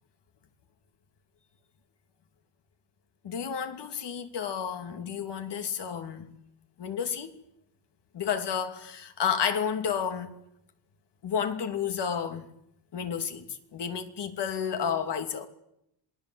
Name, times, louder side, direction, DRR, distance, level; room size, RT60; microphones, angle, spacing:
voice 1, 3.2-6.3 6.8-7.3 8.1-10.3 11.2-12.5 12.9-15.5, left 7 dB, 60° left, 2.8 m, -31 dB
27.0 x 19.5 x 8.0 m
cardioid pair, 100°, 46 cm